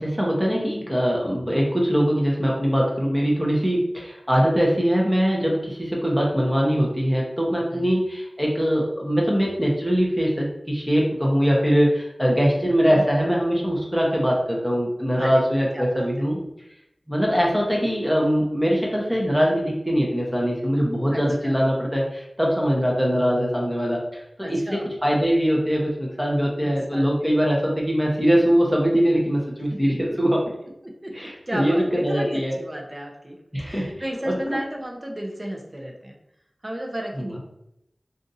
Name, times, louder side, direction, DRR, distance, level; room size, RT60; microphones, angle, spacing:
voice 1, 0.0-16.4 17.1-24.0 24.4-30.4 31.1-31.8 32.0-32.6 33.5-34.6 37.2-37.4, equal, 5° right, -2 dB, 0.9 m, -22 dB
voice 2, 12.6-13.0 15.2-15.4 15.7-16.1 21.1-21.6 24.4-24.9 26.6-27.4 29.7-30.0 30.8-31.1 31.5-36.2 36.6-37.4, right 1 dB, 30° right, 1 dB, 0.7 m, -34 dB
2.6 x 2.5 x 4.0 m, 0.81 s
wide cardioid pair, 50°, 0 cm